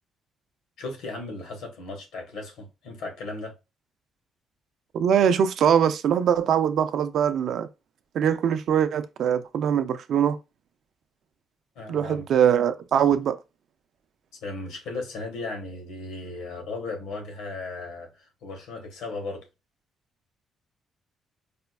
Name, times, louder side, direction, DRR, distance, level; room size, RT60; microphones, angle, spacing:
voice 1, 0.8-3.5 11.7-12.2 14.4-18.1 18.4-19.5, left 3 dB, 90° left, 1.2 m, -36 dB
voice 2, 4.9-7.7 8.1-10.4 11.9-13.4, right 8 dB, 70° right, 0.4 m, -22 dB
4.9 x 2.2 x 2.3 m
cardioid pair, 90°, 0 cm